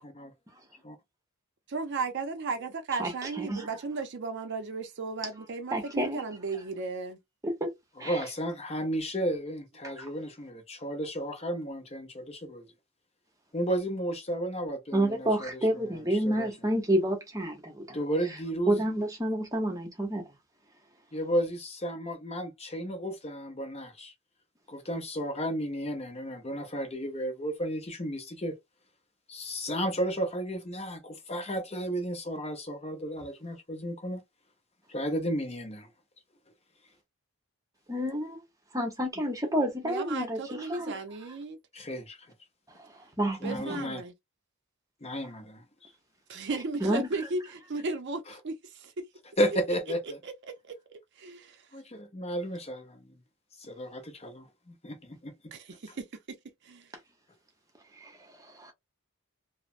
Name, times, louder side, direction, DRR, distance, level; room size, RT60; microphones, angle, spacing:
voice 1, 1.7-7.2 8.2-8.3 39.8-41.6 43.4-44.1 46.3-49.1 50.2-50.3 51.2-51.7 55.5-56.4 56.6-56.9, right 3 dB, 50° right, 0.5 m, -35 dB
voice 2, 5.7-6.2 7.4-7.7 8.0-8.2 10.0-10.1 14.9-18.0 18.7-20.2 37.9-38.4 38.7-40.9 43.2-43.8 46.8-47.1 58.6-58.7, right 1 dB, 15° right, 0.8 m, -29 dB
voice 3, 8.0-12.7 13.5-16.5 17.9-18.8 21.1-24.1 24.7-28.6 29.3-34.2 34.9-35.9 41.7-42.2 43.4-44.0 45.0-45.6 49.4-50.2 51.7-53.0 53.6-55.3, equal, 30° left, 0.7 m, -33 dB
3.2 x 2.0 x 2.4 m
head